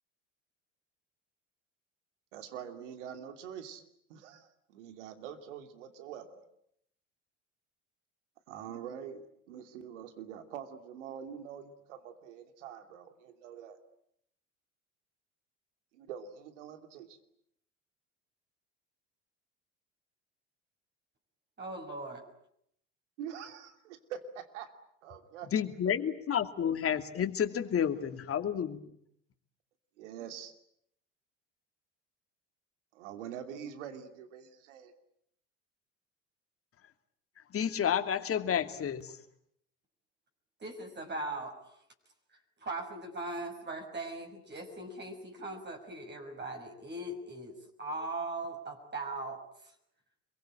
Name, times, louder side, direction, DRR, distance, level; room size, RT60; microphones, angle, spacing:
voice 1, 2.3-3.8 4.1-6.4 8.5-13.8 15.9-17.2 23.2-24.7 25.0-25.5 30.0-30.5 32.9-34.9, right 8 dB, 75° right, 8 dB, 2.9 m, -45 dB
voice 2, 21.6-22.2 40.6-41.7 42.6-49.4, right 2 dB, 30° right, 2 dB, 6.2 m, -39 dB
voice 3, 25.4-28.8 37.4-39.2, left 8 dB, 40° left, 7 dB, 2.7 m, -31 dB
27.5 x 23.0 x 9.0 m, 0.71 s
hypercardioid pair, 70°, 36 cm